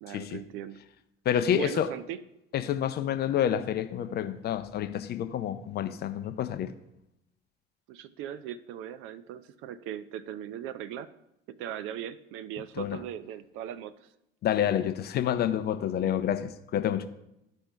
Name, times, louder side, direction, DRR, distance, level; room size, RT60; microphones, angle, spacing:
voice 1, 0.0-0.8 1.5-2.2 7.9-11.1 11.5-14.1, right 10 dB, 45° right, 0.5 m, -39 dB
voice 2, 1.3-1.9 2.5-6.7 12.8-13.0 14.4-17.1, left 10 dB, 35° left, 0.5 m, -28 dB
13.0 x 5.2 x 2.2 m
figure-of-eight pair, 60°, 30 cm